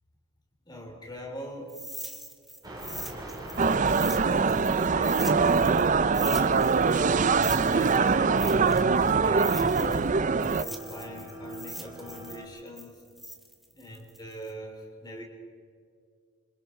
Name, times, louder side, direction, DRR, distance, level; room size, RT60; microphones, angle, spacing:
voice 1, 0.6-1.8 3.8-12.9 13.7-15.2, left 1 dB, 20° left, 1 dB, 3.4 m, -42 dB
sound 1, 1.7-5.9 6.1-10.1 10.4-14.5, right 1 dB, ahead, 1.3 m, -42 dB
sound 2, 2.6-12.4, right 1 dB, 20° right, 4.2 m, -44 dB
sound 3, 3.6-10.6, right 5 dB, 35° right, 0.5 m, -23 dB
28.0 x 26.0 x 4.4 m, 2.3 s
head